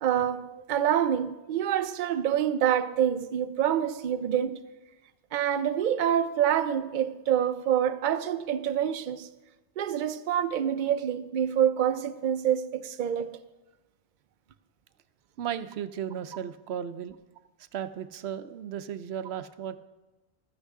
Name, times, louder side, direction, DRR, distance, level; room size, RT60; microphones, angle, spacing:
voice 1, 0.0-4.6 5.3-9.3 9.8-13.3, right 9 dB, 55° right, 0.7 m, -26 dB
voice 2, 15.4-17.2 17.7-19.7, right 9 dB, 85° right, 0.8 m, -35 dB
15.0 x 13.0 x 3.6 m
omnidirectional pair, 1.0 m